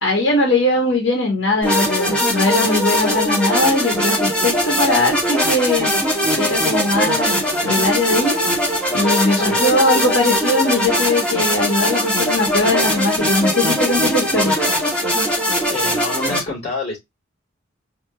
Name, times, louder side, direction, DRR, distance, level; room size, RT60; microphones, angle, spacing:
voice 1, 0.0-5.9 6.4-8.4 8.9-14.5, left 2 dB, 75° left, 1.8 m, -20 dB
sound 1, 1.6-16.4, equal, 5° left, 1.9 m, -20 dB
voice 2, 15.7-17.0, left 3 dB, 35° left, 3.1 m, -27 dB
4.5 x 3.5 x 3.1 m
head